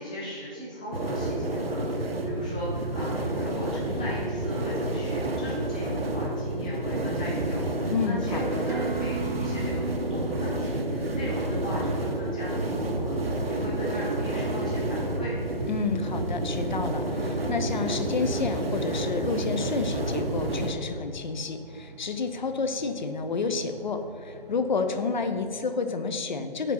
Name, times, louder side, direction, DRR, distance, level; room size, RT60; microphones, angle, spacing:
voice 1, 0.0-15.4, equal, 10° left, -6 dB, 0.5 m, -37 dB
sound 1, 0.9-20.7, right 1 dB, 85° right, 0.8 m, -29 dB
Engine, 6.2-25.1, right 2 dB, 25° right, 0.8 m, -48 dB
voice 2, 7.9-8.6 15.7-26.7, left 4 dB, 55° left, 7 dB, 0.6 m, -30 dB
Acoustic guitar, 8.7-13.9, right 3 dB, 60° right, 0.6 m, -38 dB
5.0 x 4.1 x 5.9 m, 2.3 s
figure-of-eight pair, 145°, 29 cm